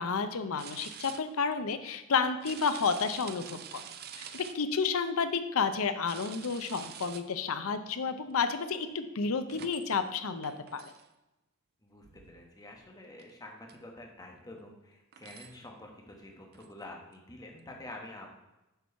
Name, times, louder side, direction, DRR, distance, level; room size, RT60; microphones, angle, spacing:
voice 1, 0.0-3.8 4.1-10.9, left 5 dB, 65° left, 10 dB, 0.6 m, -31 dB
sound 1, 0.6-1.2 1.5-1.6 2.4-4.6 6.0-7.2 8.9-9.0 9.5-10.1 10.4-11.1 12.0-12.4 12.8-12.9 13.2-13.3 13.7-13.8 14.6-14.7 15.1-15.6 16.5-16.7 17.1-17.2, right 9 dB, 45° right, 0.5 m, -47 dB
voice 2, 11.8-18.3, left 1 dB, 15° left, 0 dB, 1.2 m, -48 dB
6.8 x 4.6 x 5.5 m, 0.97 s
head